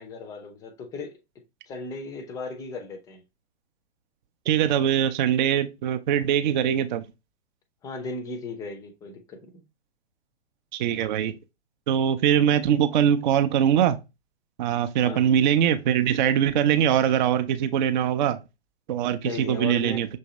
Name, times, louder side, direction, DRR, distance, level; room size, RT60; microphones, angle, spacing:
voice 1, 0.0-3.2 7.8-9.6 15.0-15.3 19.2-20.1, left 3 dB, 10° left, 0.4 m, -36 dB
voice 2, 4.5-7.0 10.7-11.3 11.9-14.0 14.6-18.4 18.9-20.1, right 9 dB, 40° right, 0.5 m, -22 dB
6.3 x 2.7 x 2.9 m
figure-of-eight pair, 115°, 35 cm